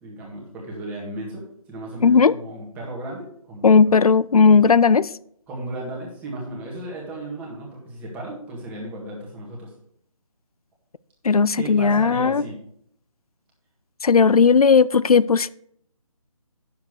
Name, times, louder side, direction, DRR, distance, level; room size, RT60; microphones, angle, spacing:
voice 1, 0.0-4.0 5.5-9.7 11.6-12.6, right 1 dB, 10° right, 1.7 m, -35 dB
voice 2, 2.0-2.3 3.6-5.1 11.2-12.4 14.0-15.5, left 5 dB, 90° left, 0.4 m, -16 dB
9.4 x 7.2 x 4.7 m
figure-of-eight pair, 160°, 18 cm